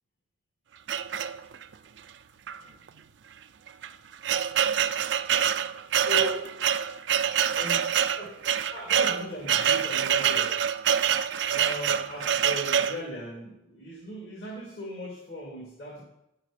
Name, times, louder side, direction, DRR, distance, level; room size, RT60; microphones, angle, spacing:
sound 1, 0.9-1.7 2.5-2.6 2.9-3.0 3.7-13.0, right 8 dB, 80° right, 0.4 m, -26 dB
voice 1, 6.0-6.4 7.5-7.8 8.1-8.3 8.6-10.6 11.5-16.0, left 1 dB, 60° left, -4 dB, 2.4 m, -38 dB
10.0 x 7.4 x 5.0 m, 0.84 s
head